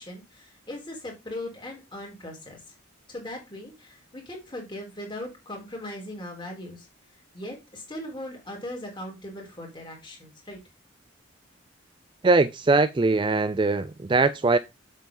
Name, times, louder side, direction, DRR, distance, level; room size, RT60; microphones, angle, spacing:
voice 1, 0.0-2.6 3.1-6.9 7.3-10.6, left 1 dB, 20° left, 3.5 m, -39 dB
voice 2, 12.2-14.6, right 3 dB, 25° right, 0.3 m, -21 dB
7.4 x 7.3 x 3.9 m
head